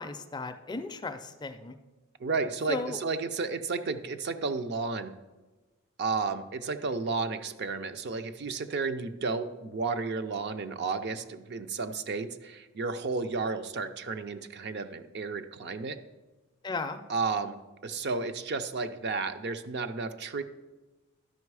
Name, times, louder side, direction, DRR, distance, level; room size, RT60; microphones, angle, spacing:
voice 1, 0.0-1.8 2.7-3.0 16.6-17.0, left 3 dB, 20° left, 8 dB, 0.4 m, -35 dB
voice 2, 2.2-5.1 6.0-16.0 17.1-20.4, right 4 dB, 50° right, 9 dB, 0.5 m, -32 dB
12.0 x 5.3 x 4.7 m, 1.2 s
head